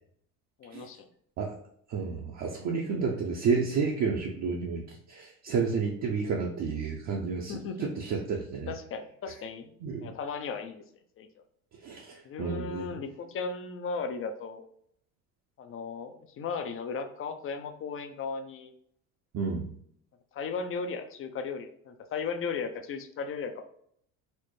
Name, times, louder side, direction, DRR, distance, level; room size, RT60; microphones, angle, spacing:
voice 1, 0.6-1.1 7.5-7.9 8.7-9.7 10.0-10.8 11.2-11.3 12.2-14.6 15.6-18.7 20.3-23.6, left 5 dB, 35° left, 8 dB, 0.4 m, -36 dB
voice 2, 1.9-4.8 5.1-8.7 9.8-10.1 11.8-12.9 19.3-19.7, right 5 dB, 45° right, 0 dB, 0.6 m, -31 dB
4.2 x 2.0 x 3.1 m, 0.67 s
supercardioid pair, 100°, 38 cm